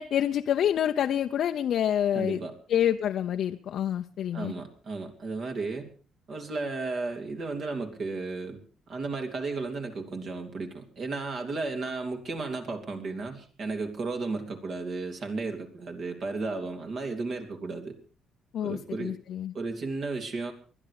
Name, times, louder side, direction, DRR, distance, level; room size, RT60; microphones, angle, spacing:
voice 1, 0.0-2.4 2.7-4.5 18.5-19.5, left 10 dB, 60° left, 5 dB, 0.7 m, -27 dB
voice 2, 2.1-2.6 4.3-5.9 6.3-8.6 8.9-18.0 18.6-19.1 19.5-20.5, right 3 dB, 50° right, 4 dB, 3.1 m, -34 dB
20.5 x 12.0 x 4.8 m, 0.38 s
cardioid pair, 125°, 0 cm